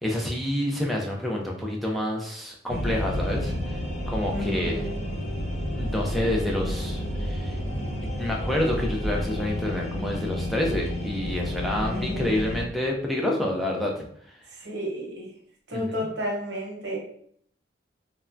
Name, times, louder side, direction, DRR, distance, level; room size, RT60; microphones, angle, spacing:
voice 1, 0.0-3.5 4.1-4.8 5.7-7.6 8.2-14.0 15.7-15.9, left 1 dB, ahead, -2 dB, 0.4 m, -28 dB
sound 1, 2.7-12.6, equal, 35° left, 0.8 m, -30 dB
voice 2, 4.3-5.1 11.9-12.4 14.5-15.3 15.7-17.0, equal, 60° right, -1 dB, 0.9 m, -32 dB
3.2 x 2.1 x 2.5 m, 0.63 s
head